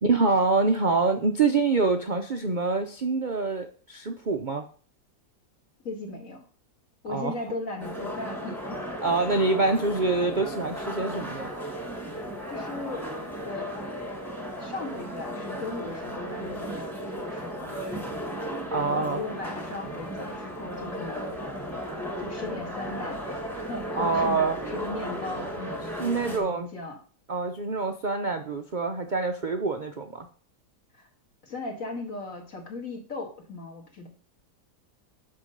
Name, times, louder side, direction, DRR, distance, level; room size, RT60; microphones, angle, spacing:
voice 1, 0.0-4.7 7.1-7.6 9.0-11.5 18.7-19.2 23.9-24.6 26.0-26.7 27.3-30.3, right 3 dB, 70° right, 6 dB, 0.4 m, -26 dB
voice 2, 5.8-6.4 7.0-8.8 12.5-13.1 13.4-13.7 14.6-18.1 18.8-21.3 22.2-23.2 23.6-24.5 24.7-27.0 30.9-31.1 31.4-34.1, left 2 dB, 50° left, 0 dB, 2.3 m, -37 dB
sound 1, 7.8-26.4, equal, ahead, 1.5 m, -35 dB
8.5 x 4.6 x 6.5 m, 0.43 s
omnidirectional pair, 1.8 m